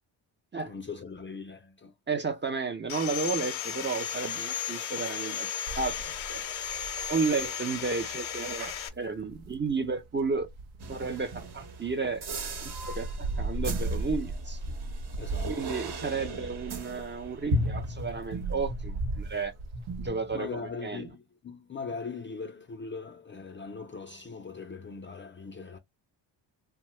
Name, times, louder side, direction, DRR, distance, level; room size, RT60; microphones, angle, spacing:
voice 1, 0.6-1.9 7.0-7.1 15.1-16.6 20.3-25.8, left 4 dB, 25° left, 0.5 m, -41 dB
voice 2, 2.1-5.5 5.8-6.0 6.3-6.4 7.1-10.5 10.9-12.3 12.6-14.6 15.5-19.5 20.0-20.5 20.8-21.0, right 4 dB, 25° right, 0.5 m, -32 dB
Sawing, 2.9-8.9, left 9 dB, 75° left, 0.7 m, -35 dB
sound 1, 5.7-11.6 12.2-20.1, right 2 dB, 80° right, 0.8 m, -38 dB
sound 2, 10.8-19.4 19.7-20.8, right 1 dB, 55° right, 1.1 m, -37 dB
2.7 x 2.2 x 3.0 m
cardioid pair, 80°, 47 cm